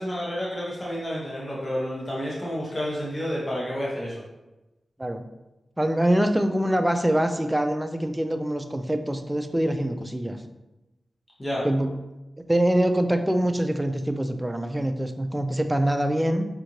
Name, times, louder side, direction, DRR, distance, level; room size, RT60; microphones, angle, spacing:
voice 1, 0.0-4.2 11.4-11.6, equal, 30° left, -5 dB, 1.1 m, -30 dB
voice 2, 5.8-10.4 11.6-11.9 12.5-16.5, right 1 dB, 15° right, 7 dB, 0.4 m, -24 dB
5.2 x 2.5 x 3.0 m, 1.0 s
cardioid pair, 55°, 0 cm